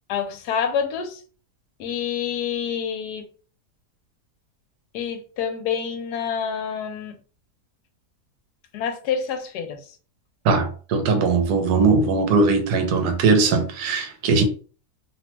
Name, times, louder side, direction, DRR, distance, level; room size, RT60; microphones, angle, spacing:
voice 1, 0.1-1.2 1.8-3.3 4.9-7.2 8.7-10.0 14.4-14.5, left 7 dB, 80° left, 1.2 m, -27 dB
voice 2, 10.4-14.4, right 4 dB, 80° right, 1.2 m, -20 dB
2.9 x 2.1 x 2.9 m
omnidirectional pair, 1.7 m